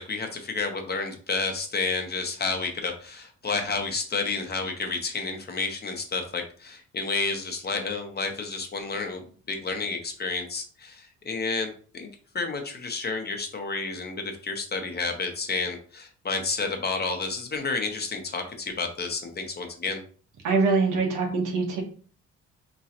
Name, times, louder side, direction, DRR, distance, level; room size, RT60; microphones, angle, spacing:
voice 1, 0.0-12.1 12.3-20.0, left 4 dB, 35° left, 5 dB, 0.9 m, -30 dB
voice 2, 20.4-21.8, right 4 dB, 90° right, 2 dB, 1.1 m, -23 dB
3.7 x 3.1 x 2.8 m, 0.42 s
cardioid pair, 90°, 30 cm